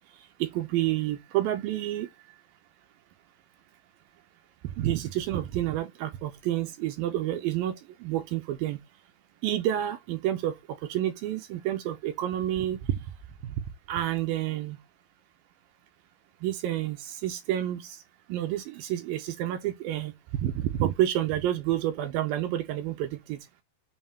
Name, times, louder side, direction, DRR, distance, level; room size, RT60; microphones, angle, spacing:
voice 1, 0.4-2.1 4.8-7.8 8.0-8.8 9.4-10.5 10.9-12.8 13.9-14.8 16.4-18.0 18.3-20.1 20.4-23.4, right 12 dB, 75° right, 2.2 m, -29 dB
7.2 x 2.7 x 5.4 m
omnidirectional pair, 4.5 m